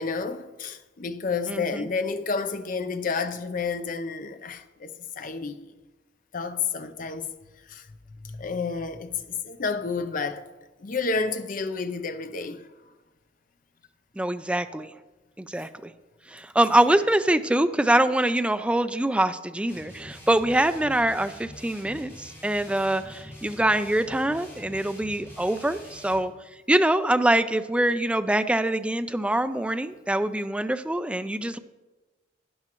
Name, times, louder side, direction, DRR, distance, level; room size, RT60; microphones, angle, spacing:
voice 1, 0.0-5.7 6.3-7.3 7.7-7.9 8.2-10.4 10.8-12.7, left 4 dB, 45° left, 0.6 m, -30 dB
voice 2, 1.5-1.9 14.2-14.9 15.4-15.9 16.3-26.3 26.7-31.6, right 1 dB, 5° right, 0.3 m, -24 dB
sound 1, 19.7-26.3, left 1 dB, 15° left, 3.8 m, -45 dB
12.0 x 9.9 x 3.0 m
head